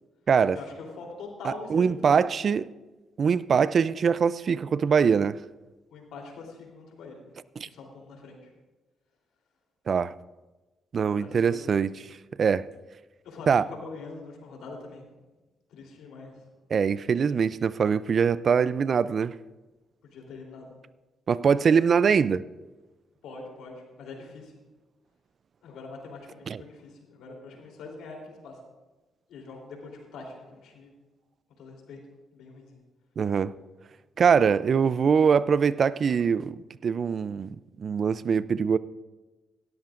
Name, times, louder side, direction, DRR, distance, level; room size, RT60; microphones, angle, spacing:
voice 1, 0.5-2.3 5.9-7.2 7.6-8.5 11.1-11.7 13.3-15.1 15.7-16.5 20.0-20.7 23.2-24.5 25.6-28.6 29.3-30.9 31.6-32.0 32.3-32.8, left 3 dB, 85° left, 3.3 m, -43 dB
voice 2, 1.4-2.7 3.2-5.4 7.6-7.7 9.9-10.1 10.9-12.7 13.5-13.6 16.7-19.3 21.3-22.4 26.5-26.6 33.2-33.5 34.2-38.8, right 6 dB, 55° right, 0.4 m, -23 dB
17.5 x 13.0 x 2.5 m
supercardioid pair, 65°, 0 cm